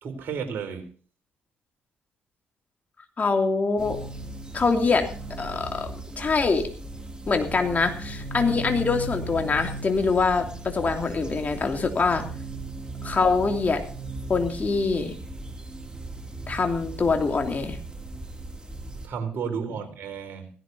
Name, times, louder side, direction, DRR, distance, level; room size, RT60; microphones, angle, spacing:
voice 1, 0.0-0.8 19.0-20.5, right 6 dB, 55° right, 5 dB, 4.0 m, -32 dB
voice 2, 3.2-4.0 4.5-5.1 5.4-5.9 6.2-6.7 7.3-12.2 13.0-13.8 14.3-15.1 16.5-17.8, left 4 dB, 35° left, 4 dB, 2.9 m, -24 dB
sound 1, 3.8-19.1, right 2 dB, 20° right, 2.9 m, -37 dB
16.5 x 15.0 x 2.8 m, 0.42 s
hypercardioid pair, 45°, 4 cm